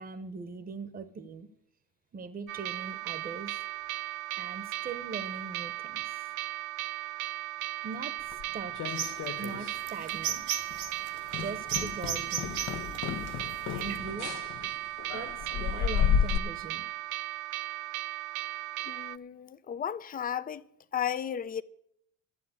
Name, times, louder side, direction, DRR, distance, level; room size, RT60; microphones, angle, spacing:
voice 1, 0.0-1.5 2.1-3.6 4.4-6.2 7.8-8.1 8.5-8.8 9.4-10.5 11.4-12.6 13.7-14.3 15.1-16.9, right 4 dB, 25° right, 1.0 m, -41 dB
sound 1, 2.5-19.2, right 16 dB, 60° right, 0.5 m, -37 dB
sound 2, 8.3-9.8 10.0-10.4 10.7-10.9 11.3-16.4, left 8 dB, 55° left, 0.8 m, -32 dB
sound 3, 8.9-14.0, right 9 dB, 80° right, 2.1 m, -36 dB
voice 2, 18.8-20.6 20.9-21.6, left 9 dB, 25° left, 0.5 m, -34 dB
12.0 x 7.4 x 9.6 m
supercardioid pair, 105°, 34 cm